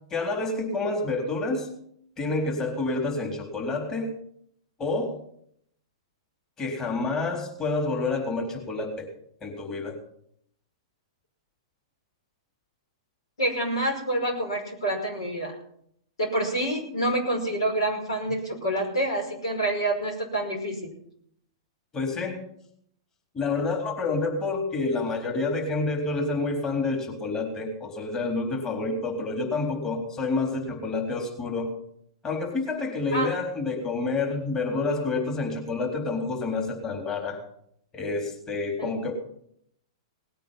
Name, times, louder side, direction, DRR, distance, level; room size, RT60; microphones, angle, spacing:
voice 1, 0.1-1.7 2.2-4.1 4.8-5.1 6.6-9.1 9.4-10.0 21.9-22.4 23.3-31.7 32.2-37.4 37.9-39.1, left 3 dB, 25° left, 1 dB, 4.0 m, -28 dB
voice 2, 13.4-15.5 16.2-20.9 33.1-33.3 38.8-39.0, right 1 dB, 80° left, 3 dB, 5.4 m, -27 dB
19.0 x 9.1 x 5.8 m, 0.69 s
hypercardioid pair, 115°, 3 cm